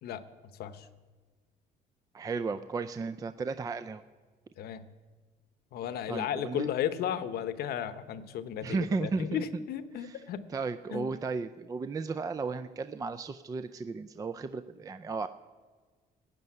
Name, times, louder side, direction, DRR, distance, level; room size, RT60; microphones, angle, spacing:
voice 1, 0.0-0.9 4.6-4.9 5.7-10.4 10.9-11.1, left 9 dB, 65° left, 12 dB, 0.8 m, -34 dB
voice 2, 2.1-4.0 6.1-6.7 8.6-9.4 10.0-10.2 10.5-15.3, right 4 dB, 20° right, 11 dB, 0.4 m, -34 dB
15.5 x 5.4 x 9.4 m, 1.4 s
cardioid pair, 110°, 17 cm